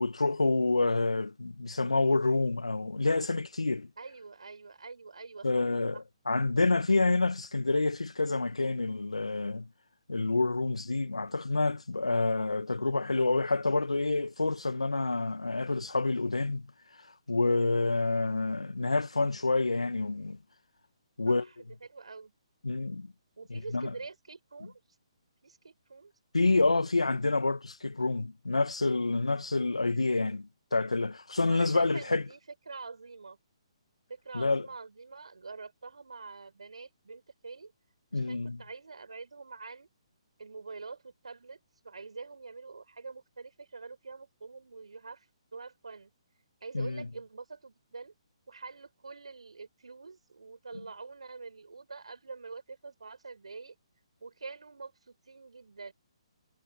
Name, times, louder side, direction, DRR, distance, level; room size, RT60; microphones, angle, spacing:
voice 1, 0.0-3.9 5.4-9.7 10.1-16.7 17.3-20.4 21.2-21.4 22.6-23.1 23.5-23.9 26.3-32.2 34.3-34.7 38.1-38.6 46.7-47.1, left 3 dB, 85° left, 2.0 m, -28 dB
voice 2, 4.0-5.6 5.9-6.0 21.3-22.3 23.4-24.8 25.4-26.1 31.5-32.4 32.7-33.4 34.1-37.7 38.1-39.9 40.4-41.6 41.8-45.3 45.5-46.1 46.6-48.1 48.5-53.8 54.2-55.9, right 4 dB, 75° right, 6.9 m, -45 dB
figure-of-eight pair, 140°, 3 cm